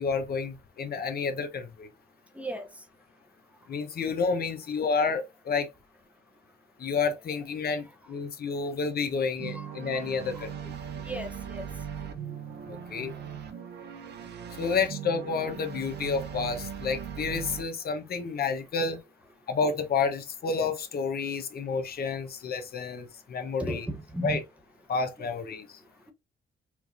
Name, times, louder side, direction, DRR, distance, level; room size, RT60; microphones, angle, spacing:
voice 1, 0.0-1.9 3.7-5.7 6.8-10.7 12.7-13.1 14.6-19.0 19.5-23.9 24.2-24.4 24.9-25.7, left 5 dB, 50° left, 0.7 m, -30 dB
voice 2, 2.4-2.7 9.5-9.7 10.4-10.5 11.0-11.6 23.6-24.4, right 1 dB, 5° right, 0.7 m, -35 dB
sound 1, 9.4-17.6, right 8 dB, 60° right, 0.7 m, -39 dB
4.6 x 2.4 x 2.4 m
cardioid pair, 90°, 20 cm